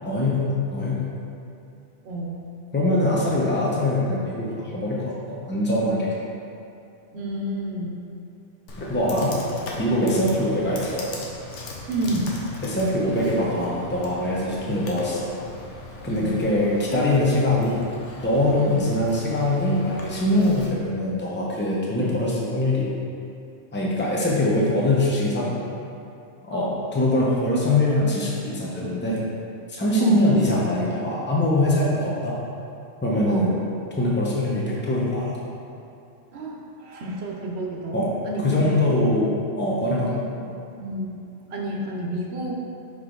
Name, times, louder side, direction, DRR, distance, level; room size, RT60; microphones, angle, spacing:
voice 1, 0.0-1.0 2.7-6.1 8.8-9.3 9.7-11.1 12.6-15.3 16.0-17.8 18.2-23.0 23.7-25.6 26.5-29.2 29.7-32.4 33.0-33.6 34.0-35.4 37.9-38.1 38.4-40.1, left 1 dB, 10° left, -5 dB, 0.8 m, -23 dB
voice 2, 2.0-2.5 7.1-8.0 9.3-9.4 10.3-10.4 11.9-12.4 14.5-14.8 16.1-16.4 18.6-18.9 21.9-22.1 26.5-26.8 30.0-30.3 33.3-33.6 36.3-38.6 39.8-40.5 40.8-41.2 41.5-42.6, right 1 dB, 65° right, -1 dB, 1.1 m, -31 dB
Computer keyboard, 8.7-20.7, left 2 dB, 85° left, 1.2 m, -39 dB
5.5 x 5.0 x 3.8 m, 2.7 s
omnidirectional pair, 1.2 m